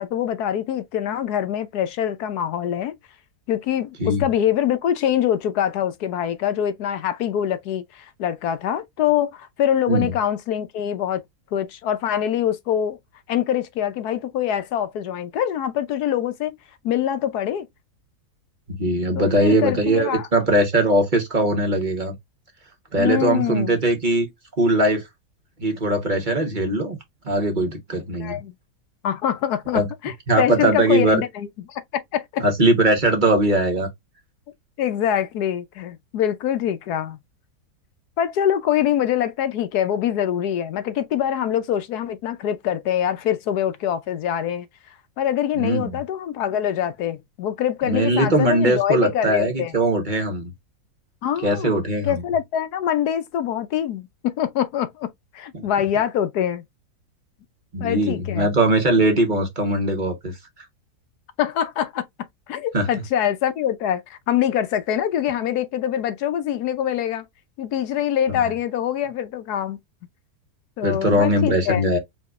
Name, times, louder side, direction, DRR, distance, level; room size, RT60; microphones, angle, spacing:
voice 1, 0.0-3.0 3.5-11.2 11.5-13.0 13.3-16.5 16.8-17.7 19.1-20.3 23.0-23.8 28.2-28.5 29.0-32.4 34.8-37.2 38.2-44.7 45.2-49.7 51.2-51.7 52.0-56.6 57.8-58.5 61.4-62.1 62.5-67.2 67.6-69.8 70.8-71.8, left 10 dB, 75° left, 1.2 m, -24 dB
voice 2, 18.8-22.1 22.9-24.3 24.6-25.0 25.6-27.0 27.2-28.4 29.7-29.9 30.3-31.2 32.4-33.9 45.5-46.0 47.8-50.5 51.4-52.1 55.5-55.7 57.7-60.3 62.7-62.9 70.8-72.0, right 1 dB, 30° right, 1.2 m, -20 dB
4.9 x 2.8 x 2.4 m
omnidirectional pair, 1.8 m